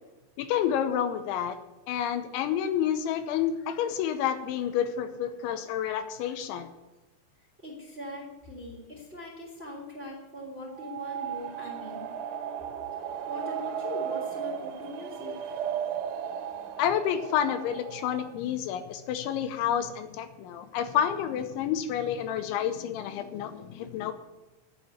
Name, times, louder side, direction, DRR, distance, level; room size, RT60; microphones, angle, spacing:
voice 1, 0.4-1.6 1.9-6.7 16.8-24.1, left 9 dB, 80° left, 8 dB, 3.1 m, -29 dB
voice 2, 7.6-12.1 13.3-15.6, left 1 dB, 15° right, -3 dB, 2.9 m, -41 dB
sound 1, 10.7-18.3, right 9 dB, 80° right, 3.6 m, -35 dB
10.0 x 8.8 x 9.5 m, 1.1 s
omnidirectional pair, 5.5 m